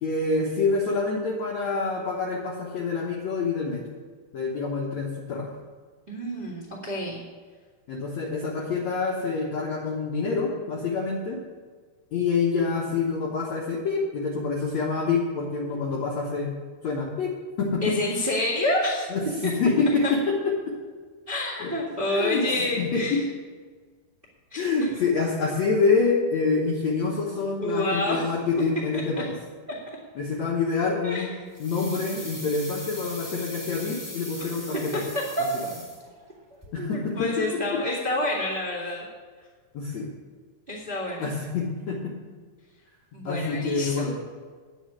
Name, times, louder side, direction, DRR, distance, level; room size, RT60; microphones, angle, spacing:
voice 1, 0.0-3.8 4.3-5.5 7.9-11.4 12.1-16.6 16.8-18.0 19.1-20.5 21.6-21.7 22.1-23.3 24.6-29.3 30.2-31.3 31.6-35.1 36.7-37.8 39.7-40.1 41.2-42.1 43.2-44.2, left 4 dB, 90° left, -3 dB, 1.5 m, -26 dB
voice 2, 6.1-7.2 17.8-19.1 19.4-19.5 20.0-20.1 21.3-23.2 24.5-24.6 27.6-28.3 28.9-29.0 31.0-31.2 34.4-34.5 34.9-35.0 35.4-35.5 36.8-39.0 40.7-41.3 43.1-44.1, left 1 dB, 25° right, -2 dB, 1.1 m, -28 dB
sound 1, 31.5-36.3 36.6-36.7, left 1 dB, 10° left, 1.4 m, -40 dB
9.9 x 7.2 x 8.3 m, 1.5 s
omnidirectional pair, 5.3 m